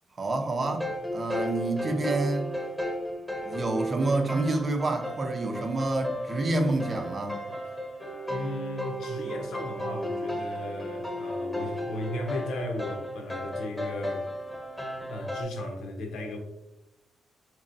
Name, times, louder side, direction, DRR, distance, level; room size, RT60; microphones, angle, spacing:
voice 1, 0.2-2.5 3.4-7.4, right 2 dB, 35° right, 0.6 m, -28 dB
sound 1, 0.6-15.4, equal, 5° left, 1.1 m, -35 dB
voice 2, 8.3-14.3 15.1-16.4, left 2 dB, 85° left, 0.8 m, -36 dB
4.0 x 3.0 x 2.6 m
cardioid pair, 105°, 0 cm